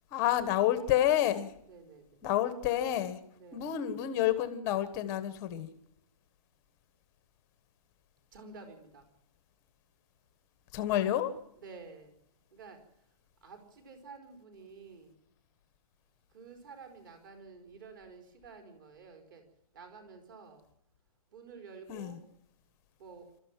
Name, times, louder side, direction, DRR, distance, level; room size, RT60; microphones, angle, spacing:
voice 1, 0.1-1.5 2.2-3.2 3.5-5.7 10.7-11.3 21.9-22.2, left 12 dB, 15° left, 11 dB, 1.2 m, -29 dB
voice 2, 1.7-2.3 3.3-3.7 8.3-9.1 11.5-12.2 12.5-15.2 16.3-19.5 19.7-20.7 21.3-22.2 23.0-23.3, right 4 dB, 35° right, 6 dB, 4.6 m, -51 dB
27.0 x 13.5 x 7.4 m, 0.75 s
hypercardioid pair, 170°, 19 cm